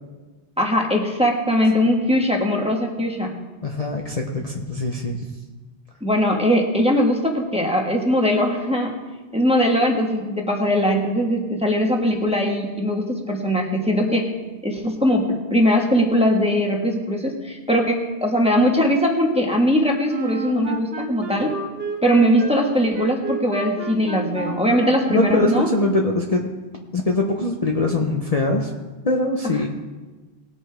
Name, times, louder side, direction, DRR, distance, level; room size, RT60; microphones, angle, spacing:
voice 1, 0.6-3.3 6.0-8.9 9.3-14.3 14.6-21.5 22.0-25.7, equal, 5° right, 0 dB, 1.4 m, -20 dB
voice 2, 3.6-5.3 25.1-26.6 26.9-28.7 29.0-29.7, left 2 dB, 35° left, 0 dB, 0.9 m, -22 dB
Wind instrument woodwind instrument, 20.1-26.1, right 4 dB, 65° right, 1.4 m, -31 dB
19.0 x 8.6 x 3.4 m, 1.2 s
omnidirectional pair, 1.1 m